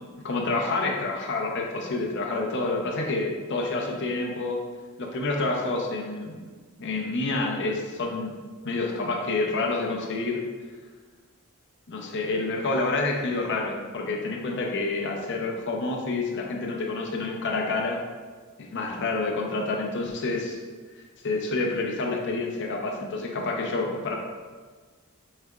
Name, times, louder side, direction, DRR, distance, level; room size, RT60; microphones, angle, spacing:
voice 1, 0.2-4.6 5.0-6.4 6.8-8.4 8.6-10.4 11.9-18.0 18.7-20.6 21.2-24.1, left 3 dB, 55° left, 0 dB, 0.6 m, -28 dB
4.7 x 3.2 x 2.3 m, 1.5 s
head